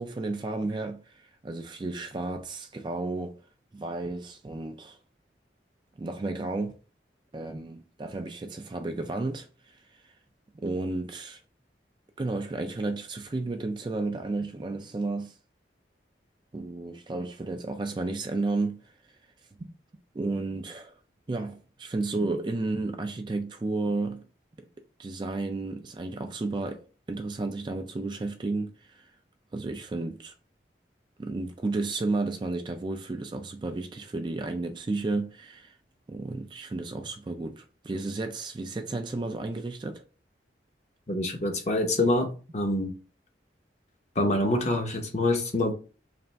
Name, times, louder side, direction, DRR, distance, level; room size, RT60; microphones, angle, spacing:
voice 1, 0.0-3.4 3.7-5.0 6.0-6.8 7.3-10.1 10.6-11.4 12.2-15.4 16.5-18.9 19.6-19.7 20.1-20.9 21.3-24.2 25.0-29.1 29.5-30.3 31.2-35.8 36.1-40.0, right 3 dB, 25° right, 0.3 m, -32 dB
voice 2, 41.1-42.3 42.5-42.9 44.2-45.7, left 1 dB, 40° left, 0.7 m, -25 dB
3.3 x 2.5 x 3.9 m
head